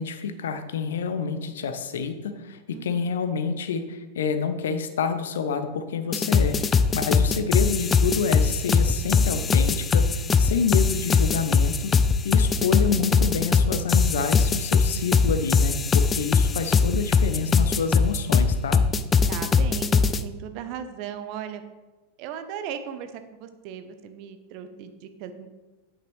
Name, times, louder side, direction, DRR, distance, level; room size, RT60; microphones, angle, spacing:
voice 1, 0.0-11.9 12.2-18.9, left 6 dB, 60° left, 9 dB, 0.6 m, -28 dB
sound 1, 6.1-20.2, left 5 dB, 20° left, 0.4 m, -21 dB
voice 2, 19.3-21.6 22.2-25.5, right 8 dB, 45° right, 9 dB, 0.7 m, -37 dB
8.6 x 6.0 x 3.2 m, 1.2 s
figure-of-eight pair, 90°, 0 cm